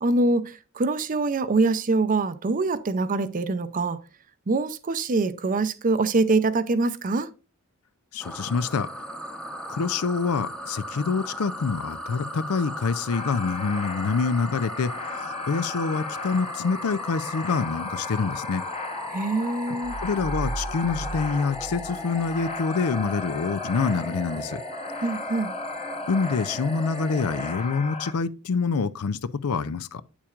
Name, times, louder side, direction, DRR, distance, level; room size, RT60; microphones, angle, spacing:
voice 1, 0.0-4.0 4.5-7.3 19.1-19.9 25.0-25.5, right 3 dB, 35° right, 0.5 m, -24 dB
voice 2, 8.1-8.9 9.7-18.6 20.0-24.6 26.1-30.0, left 5 dB, 75° left, 0.5 m, -26 dB
sound 1, 8.2-27.5, equal, 5° left, 0.8 m, -37 dB
sound 2, 13.1-28.1, left 4 dB, 30° left, 1.0 m, -37 dB
sound 3, 19.8-22.6, right 3 dB, 80° right, 0.6 m, -36 dB
8.5 x 7.2 x 2.4 m
head